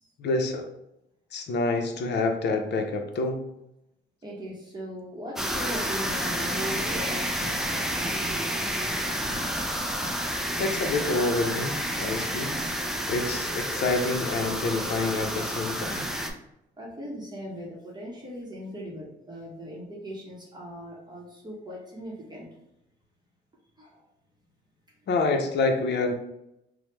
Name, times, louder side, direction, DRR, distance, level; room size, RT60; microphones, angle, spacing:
voice 1, 0.2-0.7 1.3-3.4 10.6-12.5 13.1-16.1 25.1-26.1, left 3 dB, 60° left, 4 dB, 0.6 m, -27 dB
voice 2, 4.2-9.5 16.8-22.5 23.8-24.0, equal, 20° right, -4 dB, 0.8 m, -39 dB
sound 1, 5.3-16.3, equal, ahead, 0.4 m, -30 dB
3.0 x 2.0 x 3.1 m, 0.84 s
cardioid pair, 90°, 20 cm